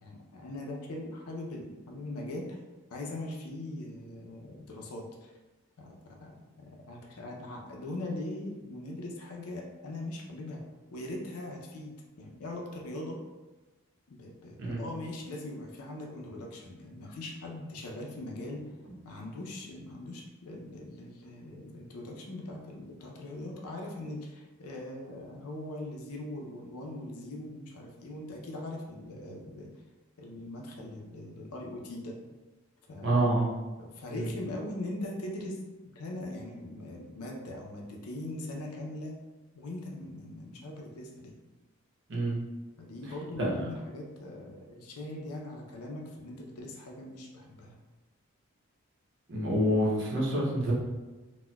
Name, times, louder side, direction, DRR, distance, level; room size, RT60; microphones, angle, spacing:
voice 1, 0.0-2.6 2.9-5.3 5.8-10.6 10.9-13.2 14.1-18.7 19.0-29.7 30.2-32.2 32.9-33.2 33.8-35.6 35.9-39.2 39.5-41.3 42.8-47.8, left 1 dB, 85° left, 0 dB, 0.6 m, -41 dB
voice 2, 33.0-33.5 34.1-34.3 42.1-42.4 43.0-43.6 49.3-50.7, right 1 dB, 50° right, -4 dB, 0.8 m, -27 dB
4.1 x 2.2 x 2.3 m, 1.2 s
head